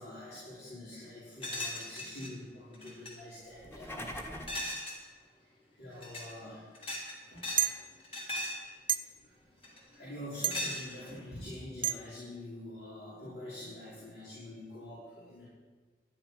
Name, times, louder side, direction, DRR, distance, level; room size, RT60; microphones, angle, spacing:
voice 1, 0.0-4.1 5.8-6.7 7.3-7.8 9.2-9.3 9.6-15.5, left 1 dB, 80° left, -11 dB, 5.1 m, -46 dB
sound 1, 1.4-2.3 2.7-3.1 4.5-5.0 5.9-6.3 6.7-7.7 8.0-8.7 9.6-9.9 10.5-11.2, left 1 dB, 30° left, 2.7 m, -38 dB
sound 2, 3.5-4.7, left 1 dB, 15° left, 1.4 m, -42 dB
sound 3, 7.6-7.8 8.9-9.0 10.4-10.6 11.8-11.9, right 10 dB, 30° right, 0.5 m, -28 dB
12.0 x 7.0 x 9.9 m, 1.4 s
head